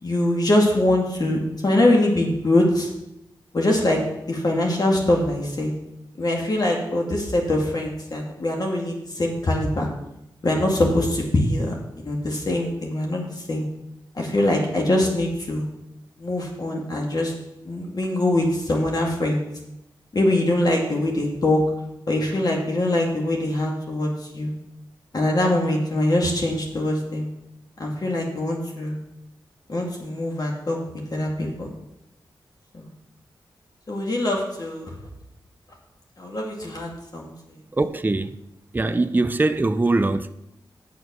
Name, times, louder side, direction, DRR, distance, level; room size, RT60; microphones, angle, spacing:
voice 1, 0.0-2.9 3.5-4.0 4.3-5.7 6.2-9.9 10.4-13.7 14.2-15.7 16.2-17.3 17.6-19.4 20.1-21.6 22.1-24.5 25.1-27.2 27.8-29.0 29.7-30.8 31.1-31.7 32.7-32.9 33.9-34.9 36.2-37.3, left 1 dB, 50° left, 2.2 m, -23 dB
voice 2, 37.7-38.4 38.7-40.3, right 2 dB, 20° right, 0.5 m, -22 dB
7.6 x 7.3 x 6.1 m
cardioid pair, 70°, 9 cm